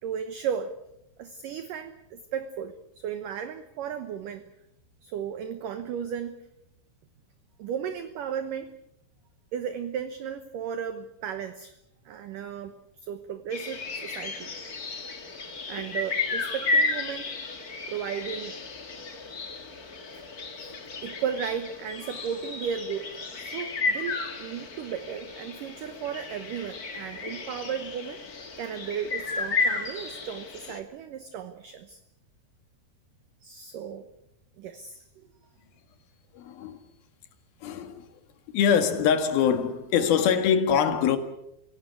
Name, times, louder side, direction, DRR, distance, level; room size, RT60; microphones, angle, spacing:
voice 1, 0.0-0.7 1.2-4.4 5.0-6.4 7.6-8.7 9.5-11.7 12.1-12.7 13.0-14.5 15.7-17.3 17.9-18.6 20.1-20.2 20.6-20.7 21.0-32.0 33.4-34.1 34.6-35.2, right 8 dB, 70° right, 2.2 m, -35 dB
sound 1, 13.5-30.8, left 3 dB, 45° left, 1.2 m, -33 dB
voice 2, 36.3-36.8 37.6-38.1 38.5-41.2, left 7 dB, 65° left, 3.4 m, -23 dB
26.0 x 17.5 x 8.4 m
omnidirectional pair, 5.1 m